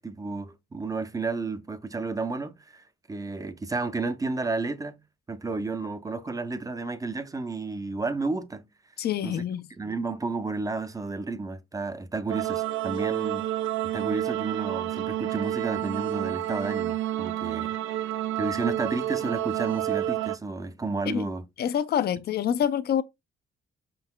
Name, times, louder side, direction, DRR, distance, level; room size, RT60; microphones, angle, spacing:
voice 1, 0.0-5.0 5.3-8.7 9.2-9.4 9.8-13.5 13.9-17.8 18.4-21.4, right 3 dB, 15° right, 0.6 m, -32 dB
voice 2, 9.0-9.7 21.1-21.2 21.6-23.0, left 9 dB, 55° left, 0.5 m, -26 dB
sound 1, 12.3-20.4, right 13 dB, 80° right, 0.4 m, -29 dB
5.2 x 3.8 x 2.2 m
cardioid pair, 90°, 20 cm